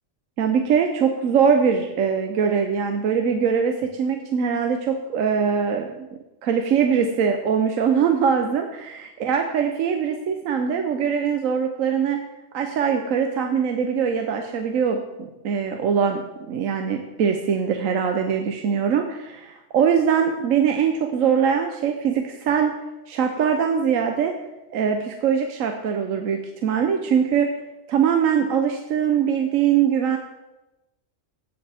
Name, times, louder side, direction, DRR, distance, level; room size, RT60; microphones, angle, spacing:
voice 1, 0.4-6.1 6.4-12.2 12.5-22.7 23.1-24.3 24.7-27.5 27.9-30.2, right 7 dB, 80° right, 4 dB, 1.2 m, -22 dB
16.5 x 7.1 x 3.4 m, 0.98 s
omnidirectional pair, 1.4 m